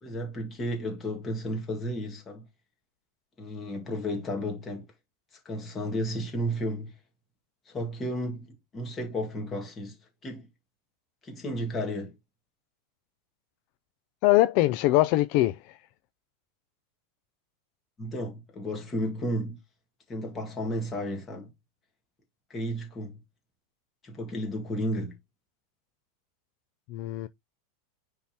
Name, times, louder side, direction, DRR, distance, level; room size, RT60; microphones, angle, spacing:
voice 1, 0.0-2.5 3.4-4.9 5.5-6.9 7.7-10.0 10.2-10.5 11.2-12.1 18.0-19.6 20.1-21.5 22.5-23.2 24.0-25.2, equal, 15° left, 1.9 m, -33 dB
voice 2, 14.2-15.8 26.9-27.3, left 17 dB, 40° left, 0.3 m, -22 dB
9.6 x 3.5 x 2.9 m
supercardioid pair, 170°, 0 cm